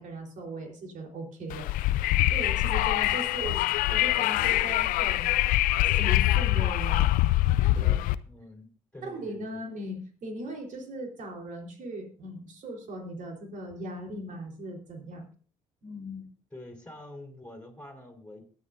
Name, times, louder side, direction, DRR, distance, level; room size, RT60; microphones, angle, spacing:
voice 1, 0.0-1.7 2.3-5.3 5.9-7.1 7.7-8.0 9.0-15.3 15.8-16.3, right 1 dB, 65° right, 1 dB, 3.8 m, -38 dB
Wind, 1.5-8.2, left 15 dB, 80° left, 0.5 m, -24 dB
voice 2, 2.9-3.4 8.2-8.7 8.9-9.6 16.5-18.4, left 1 dB, 10° left, 1 dB, 4.7 m, -46 dB
22.5 x 9.0 x 2.6 m, 0.41 s
supercardioid pair, 60°, 14 cm